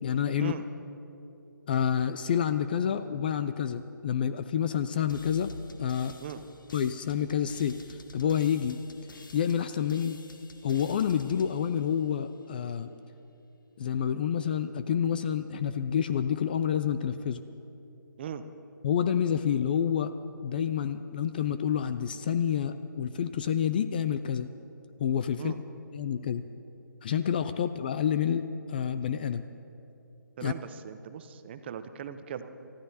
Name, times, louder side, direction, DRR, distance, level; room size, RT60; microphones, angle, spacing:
voice 1, 0.0-0.5 1.7-5.5 5.8-6.2 6.7-8.8 9.3-10.2 10.6-12.9 13.8-17.4 18.8-20.1 20.4-24.5 25.0-25.5 25.9-26.4 27.0-29.4 30.4-30.5, left 8 dB, 25° left, 12 dB, 0.3 m, -28 dB
sound 1, 5.1-12.6, left 2 dB, 75° left, 1.0 m, -51 dB
voice 2, 30.4-32.7, right 8 dB, 30° right, 10 dB, 0.7 m, -39 dB
29.5 x 14.5 x 2.8 m, 2.8 s
figure-of-eight pair, 150°, 11 cm